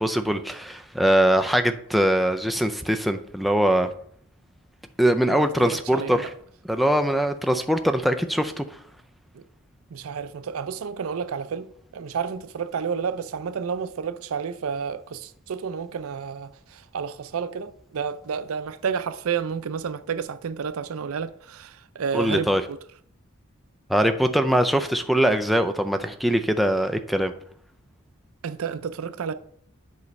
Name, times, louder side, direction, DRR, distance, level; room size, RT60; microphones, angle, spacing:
voice 1, 0.0-3.9 5.0-6.3 6.7-8.6 22.1-22.6 23.9-27.3, equal, ahead, 0.4 m, -22 dB
voice 2, 5.3-6.3 9.3-9.4 9.9-22.8 28.4-29.3, right 6 dB, 75° right, 0.4 m, -31 dB
8.4 x 3.1 x 5.2 m
head